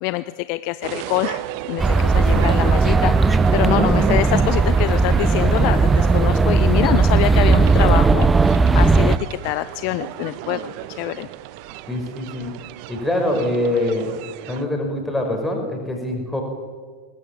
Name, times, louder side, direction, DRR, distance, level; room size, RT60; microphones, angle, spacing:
voice 1, 0.0-3.1 3.5-8.5 8.7-11.3, left 18 dB, 45° left, 15 dB, 0.5 m, -25 dB
sound 1, 0.8-14.7, right 15 dB, 45° right, 0.9 m, -33 dB
sound 2, 1.8-9.2, right 4 dB, 10° right, 0.7 m, -16 dB
voice 2, 11.9-12.5 12.9-14.1 14.5-16.4, left 1 dB, 5° left, 1 dB, 5.5 m, -24 dB
21.0 x 20.0 x 7.5 m, 1.5 s
figure-of-eight pair, 90°, 0 cm